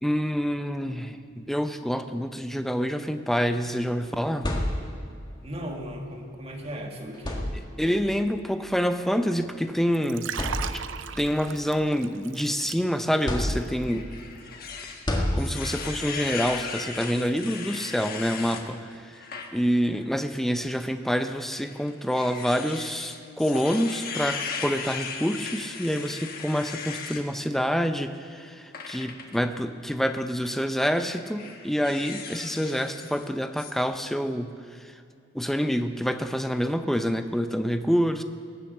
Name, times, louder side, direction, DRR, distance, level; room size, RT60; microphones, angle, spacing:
voice 1, 0.0-4.5 7.8-10.3 11.2-14.1 15.3-18.9 19.5-34.6 35.3-38.2, equal, ahead, 8 dB, 0.6 m, -27 dB
sound 1, 4.1-5.2 6.5-6.6 7.1-8.0 9.1-9.3 9.8-9.9 10.3-11.1 11.6-12.7 13.3-14.1 15.1-16.0, left 1 dB, 25° left, 1.7 m, -30 dB
voice 2, 5.4-7.5, equal, 30° right, 1 dB, 1.7 m, -37 dB
Liquid, 9.9-13.2 13.5-13.8, right 8 dB, 70° right, 0.5 m, -37 dB
sound 2, 13.9-18.6 19.1-19.5 19.9-20.1 21.1-27.2 28.7-29.4 30.3-30.6 31.0-33.3 33.6-33.7, left 5 dB, 50° left, 1.3 m, -37 dB
19.5 x 7.0 x 7.7 m, 2.5 s
head